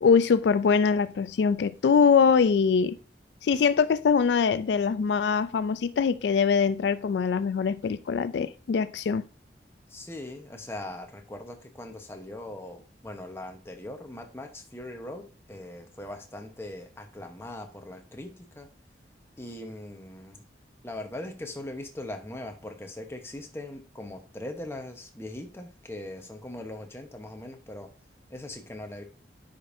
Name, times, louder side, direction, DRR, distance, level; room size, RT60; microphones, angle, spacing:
voice 1, 0.0-3.0 3.4-9.2, left 6 dB, 75° left, 0.3 m, -23 dB
voice 2, 9.9-18.7 19.4-20.4 20.8-27.9 28.3-29.0, left 1 dB, 15° left, 0.9 m, -40 dB
9.4 x 5.2 x 2.6 m
head